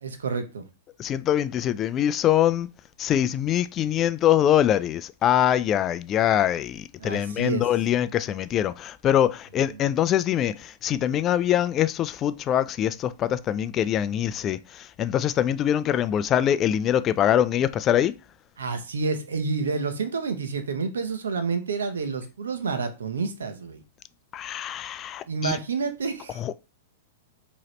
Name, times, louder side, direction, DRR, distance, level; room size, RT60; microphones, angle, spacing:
voice 1, 0.0-0.6 7.0-7.7 9.7-9.9 18.6-23.8 25.3-26.4, right 4 dB, 85° right, 0.9 m, -29 dB
voice 2, 1.0-2.7 3.0-10.5 10.8-14.6 15.0-18.1 24.3-25.5 26.4-26.5, left 11 dB, 30° left, 0.3 m, -23 dB
4.8 x 3.0 x 3.1 m
hypercardioid pair, 115°, 0 cm